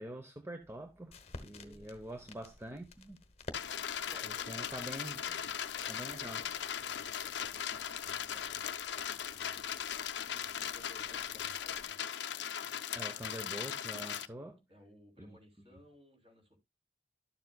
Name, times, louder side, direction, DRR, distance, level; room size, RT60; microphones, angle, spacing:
voice 1, 0.0-3.2 4.2-5.2 5.9-6.4 12.9-14.6 15.2-15.4, right 1 dB, 15° right, 0.8 m, -45 dB
sound 1, 0.6-11.9, left 2 dB, 35° left, 1.0 m, -55 dB
voice 2, 1.3-1.9 3.7-5.4 5.7-8.7 9.3-10.1 10.4-12.0 14.7-16.6, equal, 30° right, 3.3 m, -60 dB
sound 2, 3.5-14.3, left 9 dB, 85° left, 0.6 m, -39 dB
12.5 x 7.2 x 2.3 m
head